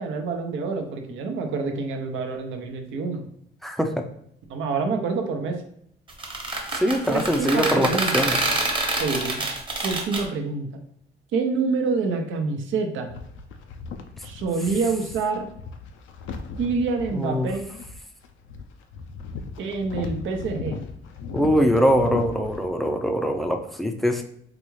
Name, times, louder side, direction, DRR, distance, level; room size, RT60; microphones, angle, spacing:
voice 1, 0.0-3.2 4.5-5.6 7.1-8.4 9.0-9.4 9.8-10.7 11.3-13.1 14.2-15.5 16.6-17.7 19.6-20.8, right 4 dB, 75° right, 4 dB, 0.7 m, -27 dB
voice 2, 3.6-4.0 6.7-8.5 17.1-17.5 21.3-24.2, equal, ahead, 4 dB, 0.4 m, -22 dB
sound 1, 6.1-10.2, right 2 dB, 25° right, 1.0 m, -26 dB
sound 2, 13.1-22.7, left 5 dB, 80° left, 0.4 m, -37 dB
4.0 x 2.4 x 3.1 m, 0.68 s
cardioid pair, 90°, 20 cm